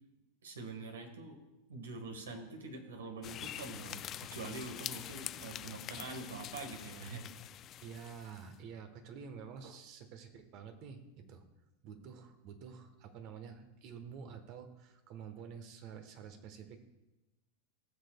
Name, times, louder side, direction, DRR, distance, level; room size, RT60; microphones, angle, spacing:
voice 1, 0.4-1.4 1.7-4.0 4.3-7.2, right 3 dB, 80° right, 5 dB, 1.4 m, -45 dB
sound 1, 3.2-8.5, left 11 dB, 35° left, 0.3 m, -45 dB
voice 2, 7.8-11.4 11.8-16.9, right 6 dB, 50° right, 8 dB, 1.1 m, -49 dB
17.5 x 6.5 x 2.3 m, 1.0 s
hypercardioid pair, 100°, 0 cm